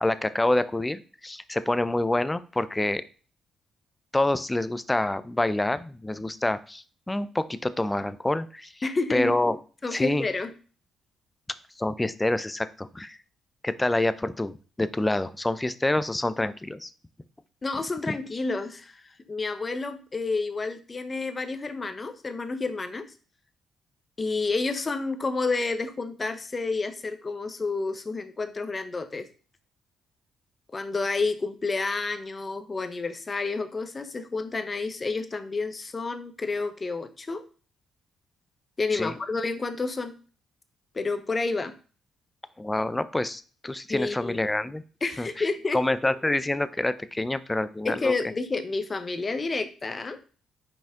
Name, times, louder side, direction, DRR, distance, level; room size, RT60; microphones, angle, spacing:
voice 1, 0.0-3.0 4.1-8.7 9.1-9.6 9.9-10.3 11.8-13.2 13.6-16.9 18.1-18.2 38.9-39.1 42.6-44.8 45.2-48.1, left 1 dB, 15° left, 14 dB, 0.5 m, -27 dB
voice 2, 8.8-9.3 9.8-10.5 17.6-23.1 24.2-29.3 30.7-37.4 38.8-40.1 40.9-41.7 43.9-44.4 45.0-45.8 47.8-50.2, left 3 dB, 30° left, 9 dB, 0.9 m, -30 dB
5.7 x 5.1 x 3.6 m, 0.38 s
cardioid pair, 90°, 0 cm